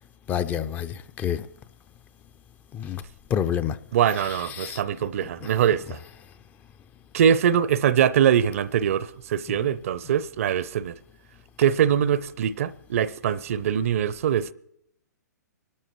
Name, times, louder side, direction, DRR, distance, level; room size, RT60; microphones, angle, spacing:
voice 1, 0.3-1.4 2.7-3.0 3.3-3.8 4.6-4.8, left 9 dB, 20° left, 0.5 m, -27 dB
voice 2, 3.9-6.0 7.1-10.9 11.6-14.5, right 9 dB, 50° right, 0.6 m, -23 dB
25.0 x 13.0 x 3.1 m
figure-of-eight pair, 120°, 10 cm